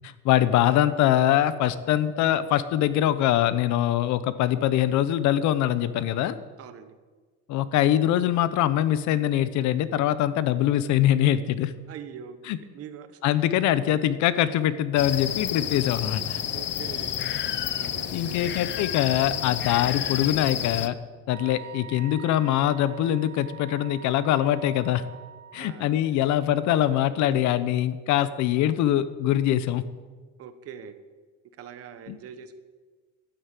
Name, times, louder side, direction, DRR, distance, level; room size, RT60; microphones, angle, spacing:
voice 1, 0.0-6.4 7.5-11.7 12.5-12.6 13.2-16.4 18.1-20.9 21.3-25.0 25.5-29.8 32.1-32.2, left 12 dB, 65° left, 14 dB, 0.9 m, -23 dB
voice 2, 6.6-6.9 11.9-12.4 12.7-13.4 16.5-17.2 17.7-18.6 25.6-25.9 30.4-31.0 31.6-32.6, right 8 dB, 50° right, 10 dB, 1.1 m, -43 dB
sound 1, 15.0-20.9, left 10 dB, 35° left, 0.6 m, -30 dB
Wind instrument woodwind instrument, 21.3-25.7, right 9 dB, 70° right, 1.2 m, -44 dB
12.0 x 9.5 x 8.3 m, 1.4 s
cardioid pair, 150°, 31 cm